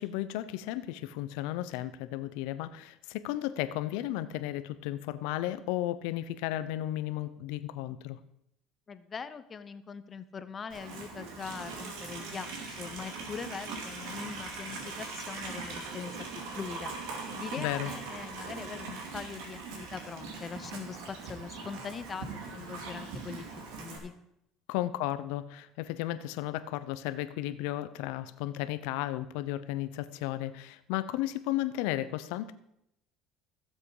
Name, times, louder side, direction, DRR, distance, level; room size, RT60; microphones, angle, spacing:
voice 1, 0.0-8.2 17.6-17.9 24.7-32.5, left 14 dB, 80° left, 13 dB, 0.8 m, -34 dB
voice 2, 8.9-16.2 16.5-24.1, left 6 dB, 30° left, 12 dB, 0.7 m, -42 dB
Livestock farm animals working animals, 10.7-24.0, right 4 dB, 85° right, 2.7 m, -41 dB
15.5 x 7.6 x 4.9 m, 0.77 s
cardioid pair, 115°, 0 cm